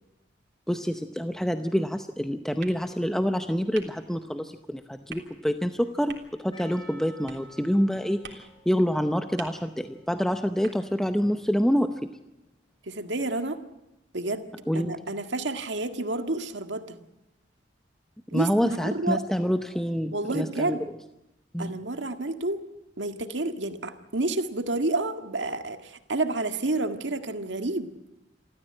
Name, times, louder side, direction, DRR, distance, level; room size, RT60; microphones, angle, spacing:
voice 1, 0.7-12.1 14.7-14.9 18.3-20.8 21.5-21.8, equal, 5° left, 7 dB, 0.7 m, -27 dB
sound 1, 2.6-11.7, right 5 dB, 70° right, 3.5 m, -50 dB
Percussion, 6.5-11.8, right 1 dB, 25° left, 5.5 m, -53 dB
voice 2, 12.9-13.6 14.1-17.0 18.3-19.3 20.1-20.8 21.6-22.6 23.0-27.9, right 2 dB, 90° right, 7 dB, 1.8 m, -30 dB
27.5 x 14.5 x 8.8 m, 0.92 s
head